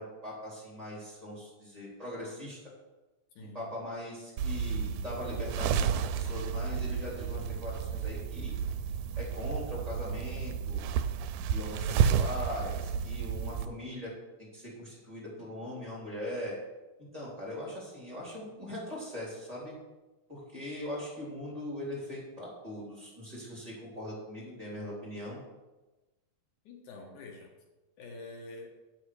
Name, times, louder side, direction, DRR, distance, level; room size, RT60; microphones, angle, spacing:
voice 1, 0.0-2.7 3.5-8.6 9.2-10.9 11.5-14.1 14.4-16.5 17.1-19.7 20.3-25.4, left 1 dB, 10° right, -6 dB, 3.0 m, -40 dB
voice 2, 3.4-3.7 26.6-27.5 28.0-28.7, left 3 dB, 80° left, 1 dB, 2.7 m, -46 dB
sound 1, 4.4-13.7, right 7 dB, 90° right, 2.1 m, -31 dB
8.7 x 8.0 x 4.8 m, 1.1 s
omnidirectional pair, 3.5 m